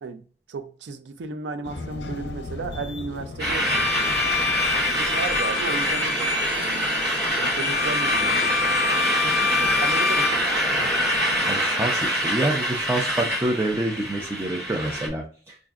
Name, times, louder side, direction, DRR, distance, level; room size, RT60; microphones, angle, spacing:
voice 1, 0.0-4.4 4.8-6.9 7.4-8.5 9.2-10.4, right 4 dB, 85° right, 0.4 m, -35 dB
sound 1, 1.6-11.6, left 2 dB, 75° left, 0.5 m, -39 dB
sound 2, 3.4-15.1, equal, 65° right, 1.1 m, -25 dB
Bowed string instrument, 3.6-10.4, left 5 dB, 40° left, 0.8 m, -27 dB
voice 2, 11.5-15.6, right 1 dB, 15° right, 0.4 m, -27 dB
4.9 x 2.5 x 2.3 m
head